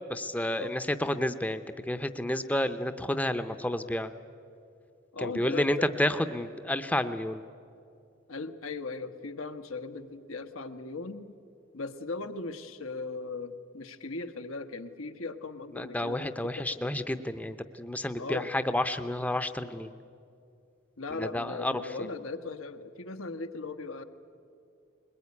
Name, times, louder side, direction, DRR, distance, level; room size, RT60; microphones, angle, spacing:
voice 1, 0.0-4.1 5.2-7.4 15.8-19.9 21.2-21.7, left 1 dB, 10° left, 10 dB, 0.6 m, -30 dB
voice 2, 5.1-6.0 8.3-11.3 11.7-16.8 18.2-18.5 21.0-24.0, left 3 dB, 90° left, 7 dB, 1.2 m, -38 dB
21.5 x 20.5 x 9.7 m, 2.5 s
head